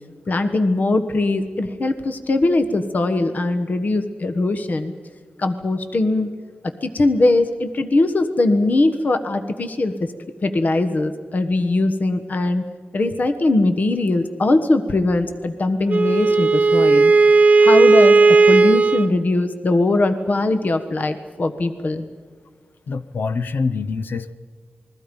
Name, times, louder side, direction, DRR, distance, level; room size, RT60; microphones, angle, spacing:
voice 1, 0.3-4.9 5.4-6.3 6.6-10.1 10.4-12.6 12.9-17.1 17.6-22.0, left 2 dB, 55° left, 8 dB, 1.3 m, -20 dB
Wind instrument woodwind instrument, 15.9-19.1, right 3 dB, 45° right, 1.0 m, -14 dB
voice 2, 22.9-24.3, left 4 dB, 75° left, 12 dB, 0.8 m, -25 dB
28.5 x 21.5 x 5.3 m, 1.5 s
wide cardioid pair, 100°, 3 cm